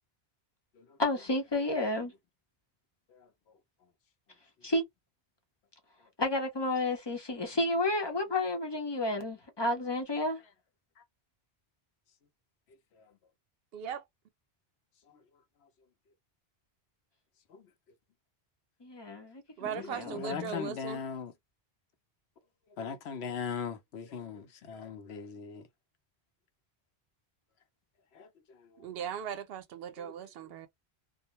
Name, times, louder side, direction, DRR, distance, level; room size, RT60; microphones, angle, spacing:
voice 1, 1.0-2.1 4.6-4.8 6.2-10.4 18.8-20.7, left 2 dB, 30° left, 0.7 m, -31 dB
voice 2, 3.1-3.6 4.6-4.7 11.0-11.1 12.7-13.2 15.1-15.2 15.6-15.7 17.5-17.7 19.8-21.3 22.7-25.7 28.1-28.9 30.0-30.5, left 6 dB, 80° left, 0.9 m, -41 dB
voice 3, 13.7-14.0 19.6-21.0 28.8-30.7, right 8 dB, 70° right, 0.7 m, -38 dB
2.3 x 2.0 x 2.8 m
omnidirectional pair, 1.1 m